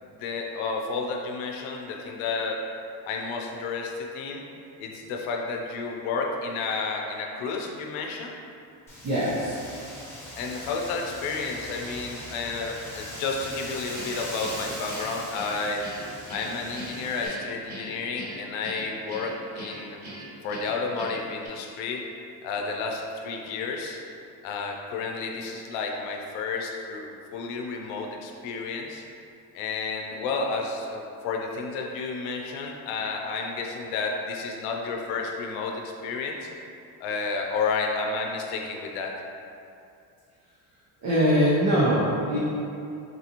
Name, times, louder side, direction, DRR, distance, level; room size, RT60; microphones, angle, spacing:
voice 1, 0.0-2.6 3.0-4.4 4.8-8.4 10.4-15.9 16.3-20.0 20.4-22.1 22.4-24.0 24.4-29.0 29.5-36.5 37.0-39.1, left 4 dB, 80° left, 1 dB, 0.6 m, -31 dB
Wind, 8.9-17.3, left 1 dB, 5° left, 1.1 m, -40 dB
voice 2, 9.0-9.6 41.0-42.4, equal, 45° right, -8 dB, 0.8 m, -22 dB
Guitar, 13.9-21.5, right 1 dB, 20° right, 1.2 m, -41 dB
3.9 x 2.5 x 2.9 m, 2.6 s
cardioid pair, 110°, 47 cm